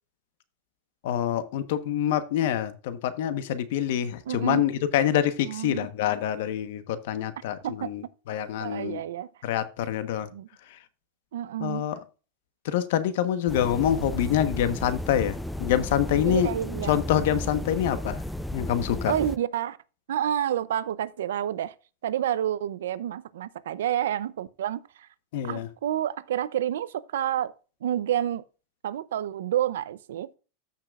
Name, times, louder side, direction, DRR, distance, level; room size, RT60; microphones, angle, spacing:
voice 1, 1.0-9.0 9.4-10.3 10.7-10.8 11.6-12.0 12.6-16.5 16.9-18.2 18.5-19.1 25.3-25.7, left 10 dB, 65° left, 1.2 m, -26 dB
voice 2, 4.3-4.6 5.4-5.9 7.6-7.9 8.6-9.3 10.3-10.5 11.3-11.8 16.2-16.9 19.1-19.8 20.1-21.7 22.0-25.1 25.4-27.5 27.8-28.4 28.8-30.3, right 11 dB, 85° right, 0.6 m, -29 dB
sound 1, 13.5-19.4, left 1 dB, 5° left, 0.4 m, -34 dB
14.0 x 5.9 x 2.5 m
supercardioid pair, 140°, 0 cm